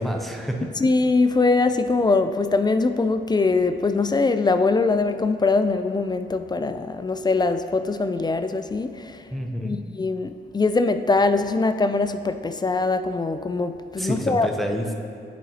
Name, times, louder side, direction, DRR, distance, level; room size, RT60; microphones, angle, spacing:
voice 1, 0.0-0.7 9.3-9.8 14.0-15.0, equal, ahead, 2 dB, 0.7 m, -28 dB
voice 2, 0.8-9.2 9.6-14.5, left 3 dB, 20° left, 10 dB, 0.3 m, -22 dB
10.0 x 4.1 x 2.8 m, 2.5 s
cardioid pair, 65°, 19 cm